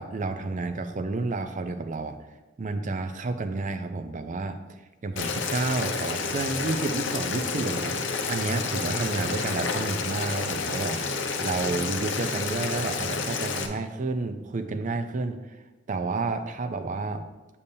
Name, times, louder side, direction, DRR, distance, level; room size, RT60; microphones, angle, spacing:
voice 1, 0.0-2.3 2.6-17.2, right 3 dB, 40° right, 8 dB, 0.5 m, -31 dB
Boiling, 5.2-13.7, left 4 dB, 65° left, 0.7 m, -30 dB
6.9 x 6.8 x 2.7 m, 1.1 s
head